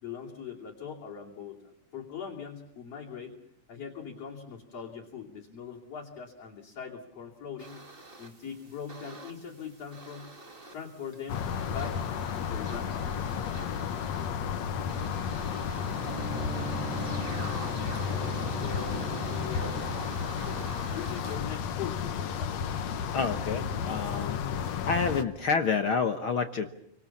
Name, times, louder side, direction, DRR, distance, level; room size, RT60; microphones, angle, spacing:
voice 1, 0.0-3.3 3.7-7.8 8.2-10.3 10.7-12.0 12.3-13.8 18.5-19.9 20.8-22.6, left 7 dB, 45° left, -2 dB, 3.7 m, -41 dB
sound 1, 7.6-21.4, right 2 dB, 20° right, 1.7 m, -45 dB
sound 2, 11.3-25.2, left 8 dB, 60° left, 2.1 m, -32 dB
Bowed string instrument, 15.8-20.4, right 7 dB, 55° right, 2.0 m, -41 dB
voice 2, 23.1-24.4 24.8-26.8, left 5 dB, 75° left, 7 dB, 1.1 m, -28 dB
29.5 x 25.5 x 7.3 m, 0.70 s
omnidirectional pair, 4.2 m